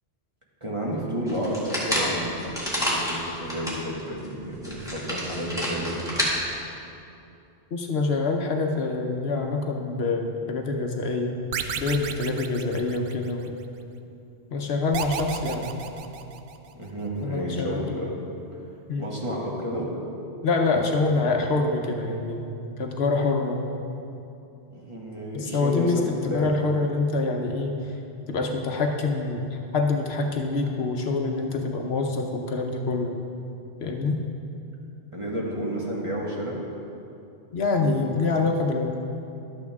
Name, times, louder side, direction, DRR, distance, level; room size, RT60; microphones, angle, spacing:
voice 1, 0.6-6.1 16.7-18.2 19.0-19.9 24.7-26.5 35.1-36.6, equal, 30° right, -4 dB, 1.5 m, -31 dB
sound 1, 1.3-3.8 4.2-4.3 4.6-6.3, equal, 5° right, 1.9 m, -28 dB
voice 2, 7.7-11.3 11.8-13.6 14.5-15.7 17.2-17.8 18.9-19.1 20.4-22.5 22.8-23.7 25.3-28.0 28.3-33.2 33.8-34.2 37.5-39.0, left 3 dB, 65° left, 3 dB, 1.0 m, -26 dB
sound 2, 11.5-13.5 14.9-16.7, right 7 dB, 65° right, 0.7 m, -33 dB
11.5 x 8.4 x 3.5 m, 2.7 s
omnidirectional pair, 1.1 m